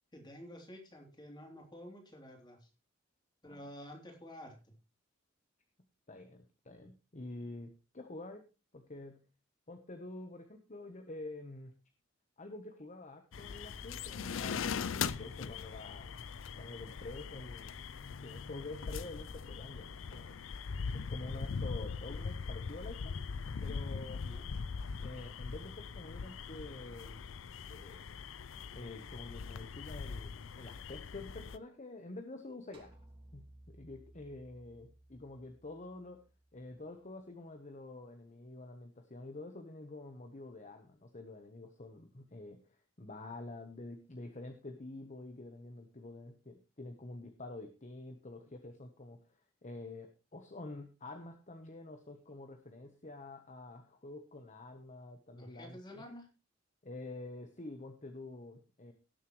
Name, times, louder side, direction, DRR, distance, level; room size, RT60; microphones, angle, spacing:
voice 1, 0.1-2.7 3.4-4.7 24.3-24.5 55.3-56.3, equal, 25° left, 1 dB, 3.2 m, -50 dB
voice 2, 6.1-8.4 8.7-9.2 9.7-11.7 12.4-16.2 16.5-17.8 18.2-20.4 20.9-23.1 23.6-24.2 25.0-27.2 27.7-28.1 28.7-32.9 33.3-36.2 36.5-42.6 43.0-49.2 49.6-56.0 56.8-58.9, left 2 dB, 40° left, 6 dB, 1.1 m, -48 dB
sound 1, 13.3-31.6, left 5 dB, 80° left, 0.5 m, -41 dB
sound 2, 32.7-37.1, right 1 dB, 30° right, 2.3 m, -60 dB
18.0 x 7.5 x 3.2 m, 0.30 s
head